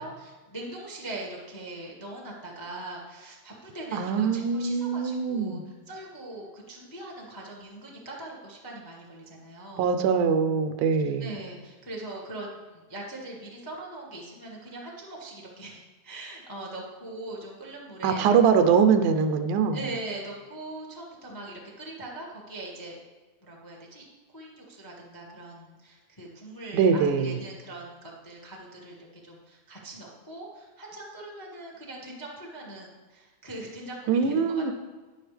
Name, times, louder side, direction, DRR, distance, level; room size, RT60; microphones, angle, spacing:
voice 1, 0.0-9.8 11.0-18.4 19.7-22.9 23.4-24.0 24.3-34.7, right 2 dB, 15° left, -2 dB, 0.7 m, -41 dB
voice 2, 3.9-5.6 9.8-11.3 18.0-19.8 26.7-27.4 34.1-34.7, right 6 dB, 85° right, 8 dB, 2.2 m, -23 dB
11.0 x 9.9 x 3.4 m, 1.3 s
omnidirectional pair, 3.5 m